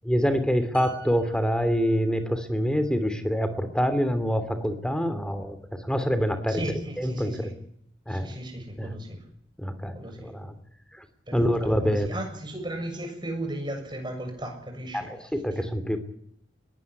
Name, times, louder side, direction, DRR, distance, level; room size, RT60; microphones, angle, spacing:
voice 1, 0.0-5.6 5.8-6.6 7.0-7.5 8.1-8.3 8.8-9.0 9.6-10.5 10.9-11.0 11.3-12.1 14.9-16.0, equal, 5° left, 10 dB, 2.8 m, -26 dB
sound 1, 0.7-4.3 4.7-4.9, right 1 dB, 25° left, 6.4 m, -52 dB
voice 2, 6.5-7.5 8.1-9.2 9.9-10.3 11.3-15.1, right 1 dB, 25° right, 3 dB, 7.0 m, -35 dB
21.5 x 18.0 x 9.7 m, 0.68 s
head